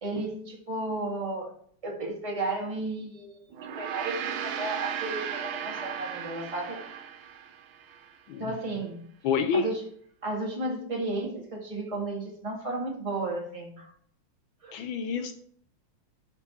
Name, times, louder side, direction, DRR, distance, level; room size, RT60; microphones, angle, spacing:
voice 1, 0.0-1.5 1.8-6.8 8.4-9.0 9.5-9.9 10.2-13.9 14.6-14.8, right 2 dB, 15° right, -1 dB, 1.9 m, -33 dB
Gong, 3.5-8.1, right 9 dB, 70° right, 1.5 m, -36 dB
voice 2, 9.2-9.7 14.7-15.3, left 6 dB, 80° left, 7 dB, 1.4 m, -28 dB
12.5 x 4.5 x 4.4 m, 0.63 s
omnidirectional pair, 2.3 m